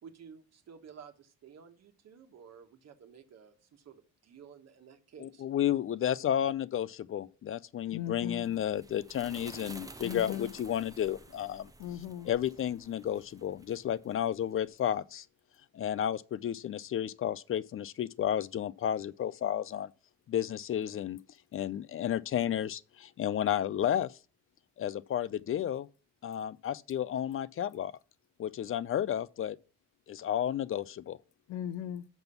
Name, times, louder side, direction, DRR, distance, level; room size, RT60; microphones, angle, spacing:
voice 1, 0.0-5.4, right 7 dB, 60° right, 1.3 m, -53 dB
voice 2, 5.2-11.7 12.2-15.3 15.7-19.9 20.3-21.2 21.5-24.2 24.8-25.9 26.2-27.9 28.4-29.6 30.1-31.2, left 10 dB, 45° left, 0.5 m, -32 dB
voice 3, 7.9-8.4 10.0-10.5 11.8-12.3 31.5-32.1, left 10 dB, 90° left, 0.6 m, -38 dB
sound 1, 8.1-14.8, right 3 dB, 10° right, 0.6 m, -52 dB
6.1 x 5.3 x 6.9 m
cardioid pair, 90°, 30 cm